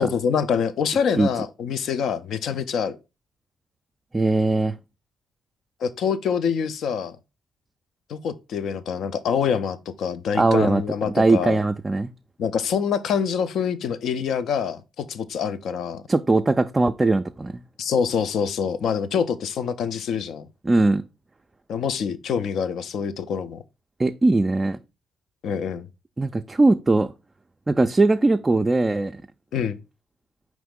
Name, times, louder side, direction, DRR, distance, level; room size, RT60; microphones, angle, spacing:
voice 1, 0.0-3.0 5.8-7.2 8.1-11.6 12.4-16.0 17.8-20.5 21.7-23.6 25.4-25.9 29.5-29.8, left 7 dB, 70° left, 0.4 m, -25 dB
voice 2, 4.1-4.8 10.4-12.1 16.1-17.6 20.6-21.0 24.0-24.8 26.2-27.1 27.7-29.2, right 2 dB, 25° right, 0.3 m, -20 dB
4.9 x 3.0 x 3.5 m
hypercardioid pair, 50°, 0 cm